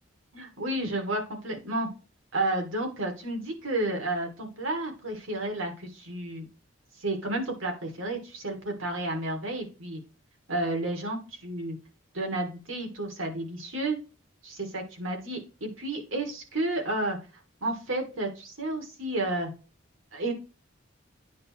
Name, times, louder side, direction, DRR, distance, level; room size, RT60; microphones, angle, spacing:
voice 1, 0.3-1.9 2.3-6.4 7.0-10.0 10.5-11.8 12.1-14.0 14.4-17.2 17.6-19.5 20.1-20.3, right 2 dB, 90° right, 2 dB, 3.1 m, -31 dB
9.5 x 6.5 x 3.3 m, 0.32 s
head